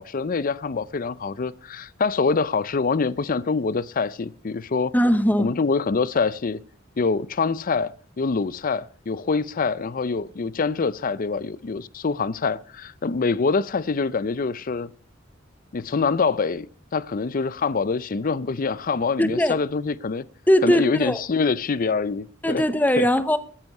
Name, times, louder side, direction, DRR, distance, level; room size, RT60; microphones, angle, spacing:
voice 1, 0.0-4.9 5.4-6.6 7.0-14.9 15.7-16.7 16.9-20.2 20.6-22.6 23.0-23.1, left 4 dB, 45° left, 0.5 m, -25 dB
voice 2, 4.9-5.5 19.2-19.6 20.5-21.2 22.4-23.4, equal, 10° left, 0.9 m, -20 dB
13.5 x 9.5 x 5.4 m
head